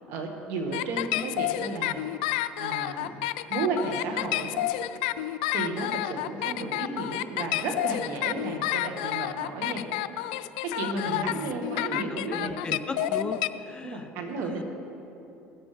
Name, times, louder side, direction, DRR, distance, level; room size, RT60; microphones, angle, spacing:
voice 1, 0.1-2.0 2.6-3.2 3.5-4.6 5.5-9.8 10.6-12.8 13.8-14.6, right 3 dB, 70° right, 3 dB, 1.7 m, -33 dB
sound 1, 0.7-13.5, left 14 dB, 90° left, 0.3 m, -29 dB
voice 2, 11.0-14.1 14.4-14.6, left 3 dB, 20° left, 9 dB, 0.5 m, -38 dB
17.0 x 8.0 x 3.4 m, 2.8 s
supercardioid pair, 105°, 4 cm